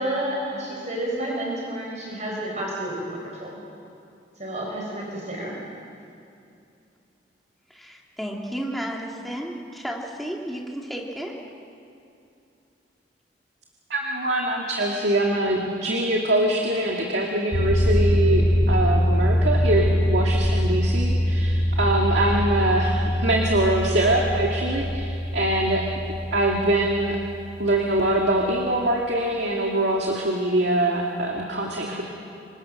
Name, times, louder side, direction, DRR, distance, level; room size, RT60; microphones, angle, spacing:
voice 1, 0.0-3.6 4.4-5.5, right 1 dB, 40° right, -3 dB, 4.6 m, -30 dB
voice 2, 7.7-11.3, equal, ahead, -2 dB, 2.8 m, -33 dB
voice 3, 13.9-18.4 18.7-25.8 26.3-27.2 27.6-32.0, right 1 dB, 65° right, -1 dB, 2.4 m, -23 dB
sound 1, 17.5-28.3, equal, 80° left, 3.8 m, -23 dB
27.5 x 24.5 x 6.5 m, 2.6 s
head